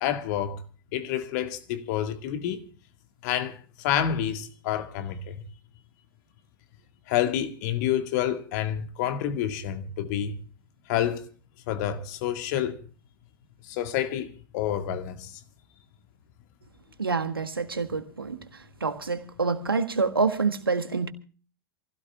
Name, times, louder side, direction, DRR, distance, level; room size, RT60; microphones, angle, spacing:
voice 1, 0.0-0.6 0.9-2.6 3.2-5.4 7.1-10.3 10.9-11.2 11.7-12.8 13.7-15.4, left 10 dB, 50° left, 2.0 m, -28 dB
voice 2, 17.0-18.4 18.8-21.1, right 4 dB, 80° right, 1.5 m, -27 dB
27.5 x 16.5 x 2.4 m
figure-of-eight pair, 90°, 12 cm